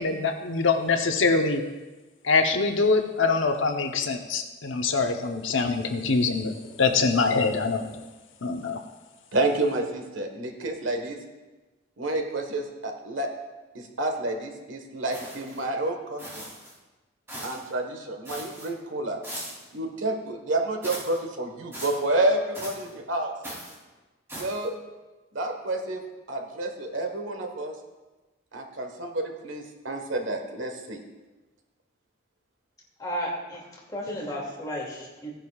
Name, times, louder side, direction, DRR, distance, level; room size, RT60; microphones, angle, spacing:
voice 1, 0.0-1.6 2.2-8.0 8.4-8.8, left 4 dB, 80° left, 5 dB, 0.9 m, -24 dB
voice 2, 9.3-11.2 12.0-13.3 13.7-16.4 17.4-19.2 19.7-23.3 24.4-24.7 25.3-26.0 26.3-27.7 28.5-31.0, right 2 dB, 80° right, 4 dB, 1.4 m, -29 dB
sound 1, 15.1-15.6 16.2-16.7 17.3-17.7 18.2-18.7 19.2-19.7 20.8-21.2 21.7-22.0 22.5-22.9 23.4-23.8 24.3-24.7, equal, 15° right, 3.1 m, -39 dB
voice 3, 33.0-35.3, equal, 20° left, -3 dB, 2.4 m, -33 dB
16.0 x 10.5 x 2.4 m, 1.2 s
head